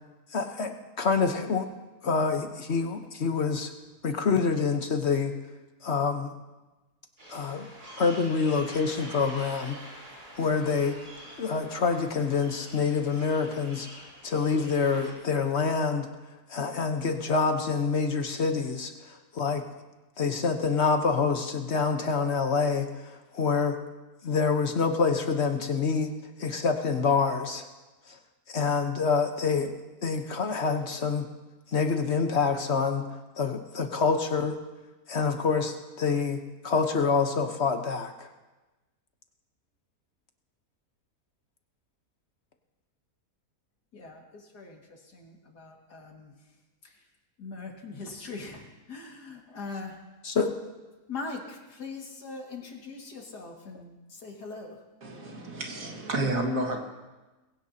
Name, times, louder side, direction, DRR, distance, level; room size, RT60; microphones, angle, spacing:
voice 1, 0.3-0.7 1.0-1.7 2.0-3.7 4.0-5.3 5.8-6.3 7.3-7.7 8.0-9.8 10.4-11.0 11.4-13.9 14.2-16.1 16.5-19.6 20.2-23.8 24.2-26.1 26.4-27.6 28.1-28.2 28.5-29.7 30.0-31.3 31.7-33.1 33.4-34.6 35.1-38.3 50.3-50.5, left 5 dB, 50° left, 5 dB, 1.2 m, -26 dB
sound 1, 7.2-15.1, right 1 dB, 75° right, 4.9 m, -46 dB
voice 2, 43.9-46.6 46.8-47.1 47.4-50.0 51.1-54.8, left 3 dB, 85° left, 0 dB, 2.7 m, -41 dB
voice 3, 55.0-56.8, right 1 dB, 60° right, 2 dB, 2.3 m, -30 dB
21.5 x 16.5 x 2.9 m, 1.1 s
omnidirectional pair, 1.7 m